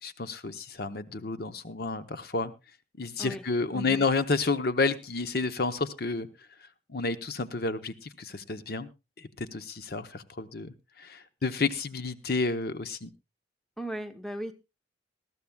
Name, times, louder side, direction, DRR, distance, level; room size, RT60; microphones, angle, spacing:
voice 1, 0.0-2.5 3.0-6.3 6.6-8.9 9.2-13.1, left 3 dB, 50° left, 11 dB, 0.8 m, -30 dB
voice 2, 3.7-4.0 13.8-14.5, right 1 dB, 5° left, 8 dB, 0.9 m, -36 dB
20.0 x 13.5 x 2.3 m, 0.26 s
head